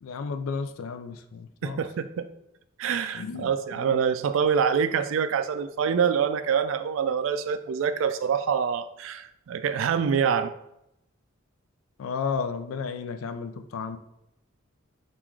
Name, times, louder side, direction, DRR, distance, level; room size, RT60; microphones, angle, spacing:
voice 1, 0.0-1.8 3.1-3.5 12.0-14.0, left 5 dB, 80° left, 10 dB, 0.4 m, -32 dB
voice 2, 1.6-2.3 2.8-10.5, right 7 dB, 70° right, 11 dB, 0.3 m, -25 dB
3.8 x 2.5 x 4.5 m, 0.83 s
head